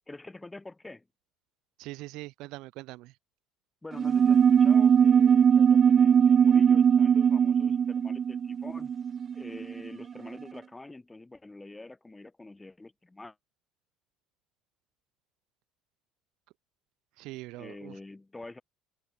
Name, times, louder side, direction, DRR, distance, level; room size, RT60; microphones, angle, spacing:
voice 1, 0.1-1.0 3.8-8.9 9.3-13.4 17.5-18.6, left 2 dB, 10° left, 4.1 m, -46 dB
voice 2, 1.8-3.1 17.2-17.9, right 20 dB, 65° right, 1.9 m, -42 dB
sound 1, 3.9-9.9, right 7 dB, 30° right, 0.3 m, -21 dB
open air
cardioid pair, 140°, 0 cm